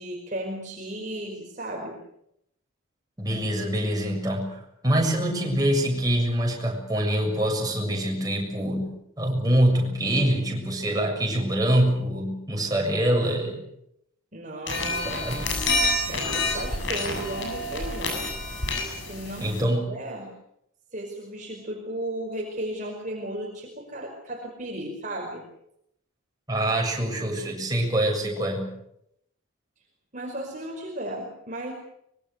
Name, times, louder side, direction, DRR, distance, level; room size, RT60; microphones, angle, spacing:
voice 1, 0.0-2.0 14.3-15.7 16.1-18.3 19.0-20.3 20.9-25.4 30.1-31.7, right 1 dB, 35° right, 0 dB, 5.1 m, -35 dB
voice 2, 3.2-13.6 15.2-15.5 19.4-19.9 26.5-28.7, right 1 dB, 20° right, 0 dB, 7.2 m, -25 dB
sound 1, 14.7-19.6, left 2 dB, 60° left, 7.6 m, -28 dB
25.0 x 23.5 x 6.6 m, 0.75 s
head